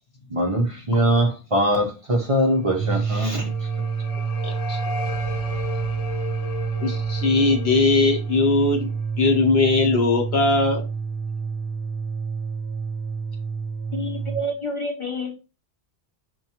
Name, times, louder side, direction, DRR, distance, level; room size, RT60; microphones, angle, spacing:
voice 1, 0.3-3.7, equal, 45° right, 0.4 m, -22 dB
sound 1, 2.6-14.5, right 5 dB, 65° right, 0.8 m, -28 dB
sound 2, 2.8-9.8, left 5 dB, 85° left, 1.0 m, -37 dB
voice 2, 4.4-4.8 6.8-8.9 9.2-10.8, left 3 dB, 65° left, 0.9 m, -20 dB
voice 3, 13.9-15.3, equal, 35° left, 0.6 m, -28 dB
5.7 x 2.2 x 2.8 m
omnidirectional pair, 1.2 m